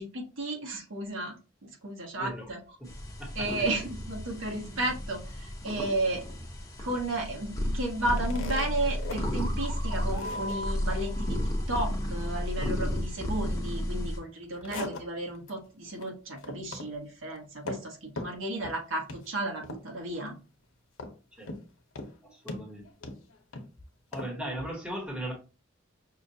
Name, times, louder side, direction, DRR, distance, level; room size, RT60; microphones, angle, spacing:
voice 1, 0.0-1.3 1.6-2.6 3.3-6.2 6.8-20.4, right 2 dB, 75° right, 1 dB, 1.2 m, -33 dB
voice 2, 2.1-2.5 2.8-2.9 3.2-3.5 14.7-14.8 21.4-21.5 22.2-22.9 24.1-25.3, right 1 dB, 5° right, 1 dB, 1.1 m, -38 dB
sound 1, 2.8-14.2, left 1 dB, 15° left, 0.8 m, -33 dB
sound 2, 8.0-9.2 9.6-9.7 10.1-10.6 14.2-15.5 15.8-16.1 16.4-16.9 17.2-17.9 18.2-18.8 19.1-19.3 19.6-20.1 21.0-21.7 22.0-22.1 22.5-23.7 24.1-24.3, left 2 dB, 85° left, 0.8 m, -40 dB
sound 3, 9.2-13.0, equal, 45° right, 1.2 m, -42 dB
5.7 x 2.4 x 2.7 m, 0.33 s
head